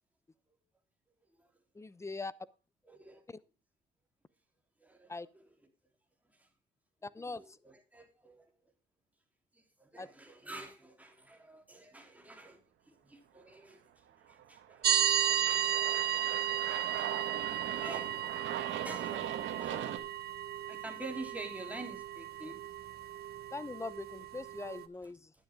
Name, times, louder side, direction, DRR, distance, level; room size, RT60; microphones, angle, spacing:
voice 1, 1.7-2.3 3.3-3.4 5.1-5.3 7.0-7.6 10.0-10.1 23.5-25.3, left 3 dB, 15° left, 0.7 m, -42 dB
voice 2, 2.8-3.2 4.8-5.4 6.3-6.5 7.3-8.5 9.5-16.2 16.9-20.0 20.7-22.6 25.0-25.1, right 2 dB, 5° right, 3.4 m, -49 dB
Aircraft, 14.3-20.0, right 10 dB, 75° right, 1.6 m, -40 dB
sound 1, 14.8-24.9, right 10 dB, 55° right, 1.0 m, -34 dB
12.0 x 9.8 x 3.6 m
cardioid pair, 90°, 20 cm